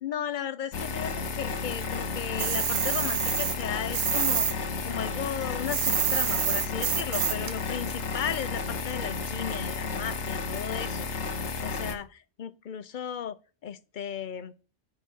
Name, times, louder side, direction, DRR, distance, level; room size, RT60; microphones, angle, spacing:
voice 1, 0.0-4.5 4.9-11.1 11.6-13.4 13.6-14.5, left 8 dB, 55° left, 0.7 m, -35 dB
sound 1, 0.7-11.9, left 4 dB, 85° left, 1.2 m, -32 dB
sound 2, 2.4-4.5 4.8-7.5, right 8 dB, 55° right, 0.4 m, -27 dB
8.4 x 3.9 x 6.0 m
omnidirectional pair, 1.2 m